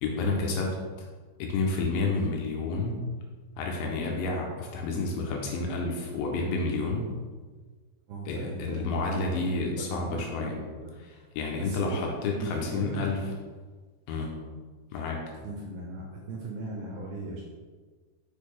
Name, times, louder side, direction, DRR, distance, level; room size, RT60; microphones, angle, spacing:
voice 1, 0.0-0.8 1.4-3.0 3.6-7.1 8.3-10.6 11.0-13.3 14.1-14.4 14.9-15.2, left 3 dB, 80° left, 0 dB, 2.9 m, -30 dB
voice 2, 8.1-10.9 11.6-13.2 15.4-17.4, right 2 dB, 80° right, -1 dB, 2.5 m, -38 dB
6.5 x 6.3 x 3.4 m, 1.4 s
omnidirectional pair, 5.6 m